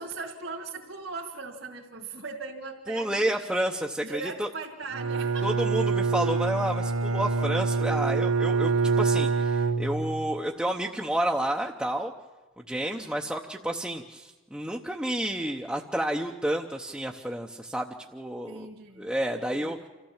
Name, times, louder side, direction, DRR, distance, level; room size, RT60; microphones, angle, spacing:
voice 1, 0.0-3.5 4.0-5.7 12.8-13.4 18.4-19.1 19.5-19.9, right 4 dB, 65° right, -1 dB, 2.2 m, -40 dB
voice 2, 2.9-4.5 5.4-8.7 9.0-12.1 12.7-18.7 19.0-19.8, right 1 dB, 5° right, -1 dB, 0.7 m, -30 dB
Bowed string instrument, 4.9-10.4, right 4 dB, 85° right, 0.7 m, -26 dB
27.0 x 15.0 x 7.2 m, 1.3 s
head